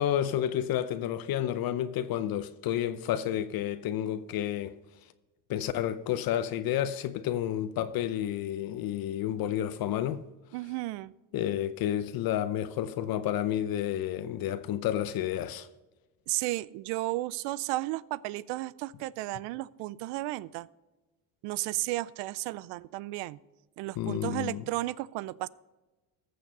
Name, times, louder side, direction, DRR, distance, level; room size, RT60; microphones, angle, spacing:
voice 1, 0.0-4.8 5.5-10.2 11.3-15.7 24.0-24.6, left 11 dB, 60° left, 0.7 m, -30 dB
voice 2, 10.5-11.1 16.3-20.7 21.4-23.4 23.8-25.5, right 18 dB, 80° right, 0.5 m, -33 dB
14.0 x 6.6 x 5.4 m
cardioid pair, 100°, 41 cm